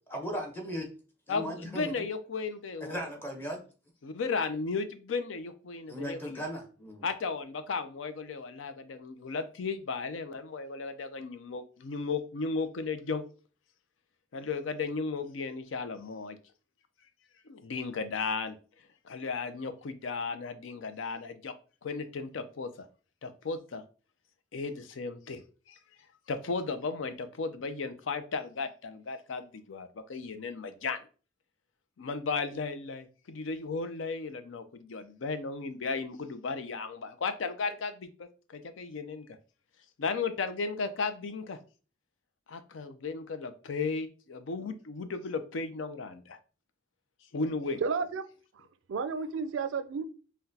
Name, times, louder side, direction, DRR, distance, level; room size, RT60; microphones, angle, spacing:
voice 1, 0.1-0.9 1.3-2.0 2.8-3.6 5.9-7.1, equal, 10° left, 0.9 m, -37 dB
voice 2, 1.3-3.0 4.0-6.4 7.0-13.2 14.3-16.4 17.5-18.6 19.0-21.5 21.8-22.9 23.2-23.8 24.5-25.8 26.3-31.0 32.0-39.3 40.0-41.6 42.5-46.4 47.3-47.8, left 4 dB, 80° left, 0.5 m, -35 dB
voice 3, 47.8-48.2 48.5-50.1, right 5 dB, 80° right, 0.4 m, -32 dB
5.8 x 2.2 x 2.7 m
head